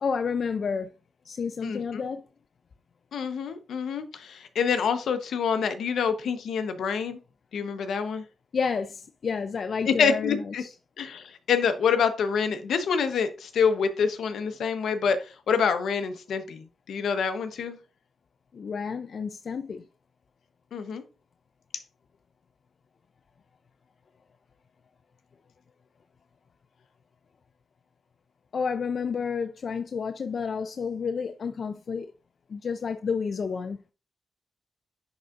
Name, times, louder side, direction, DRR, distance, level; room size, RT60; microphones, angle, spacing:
voice 1, 0.0-0.9 1.2-2.2 8.5-10.7 18.5-19.9 28.5-32.1 32.5-33.8, left 5 dB, 60° left, 0.4 m, -30 dB
voice 2, 1.6-2.0 3.1-7.2 7.5-8.2 9.8-10.6 11.0-17.8 20.7-21.0, left 6 dB, 80° left, 0.8 m, -27 dB
10.5 x 3.8 x 2.4 m
cardioid pair, 75°, 0 cm